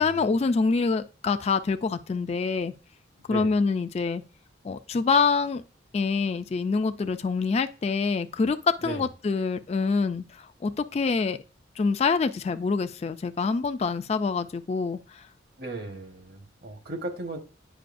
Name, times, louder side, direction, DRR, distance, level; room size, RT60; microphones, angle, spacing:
voice 1, 0.0-2.7 3.3-4.2 4.6-5.6 5.9-11.4 11.8-15.3, left 4 dB, 35° left, 0.3 m, -26 dB
voice 2, 3.2-3.5 8.8-9.0 15.6-17.4, right 2 dB, 55° right, 1.2 m, -36 dB
9.0 x 5.5 x 2.5 m
head